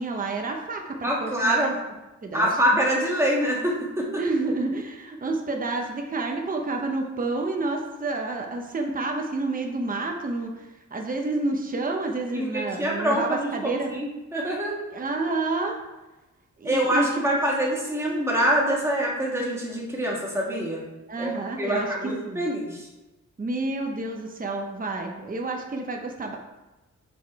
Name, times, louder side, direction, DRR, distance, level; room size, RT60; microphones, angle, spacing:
voice 1, 0.0-1.8 2.2-2.5 4.2-13.9 14.9-15.8 16.6-17.3 21.1-21.9 22.2-22.4 23.4-26.4, right 3 dB, 30° right, 2 dB, 0.8 m, -29 dB
voice 2, 1.0-1.7 2.3-4.1 12.3-14.8 16.6-20.9 21.2-22.9, right 1 dB, 10° right, -4 dB, 1.6 m, -25 dB
6.2 x 5.0 x 4.6 m, 1.1 s
wide cardioid pair, 130°, 30 cm